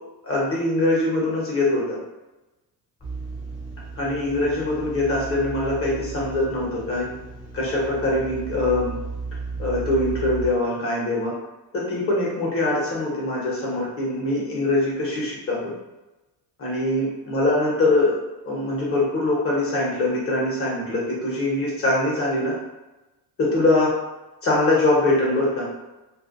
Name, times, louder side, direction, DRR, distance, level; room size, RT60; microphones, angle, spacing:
voice 1, 0.2-2.0 4.0-7.1 7.5-8.9 9.6-11.3 11.7-15.7 16.6-18.2 18.4-22.5 23.4-23.9 24.4-25.6, left 2 dB, 35° left, -5 dB, 1.0 m, -23 dB
sound 1, 3.0-10.5, right 3 dB, 10° left, 0.6 m, -35 dB
2.5 x 2.1 x 2.5 m, 1.1 s
cardioid pair, 130°, 39 cm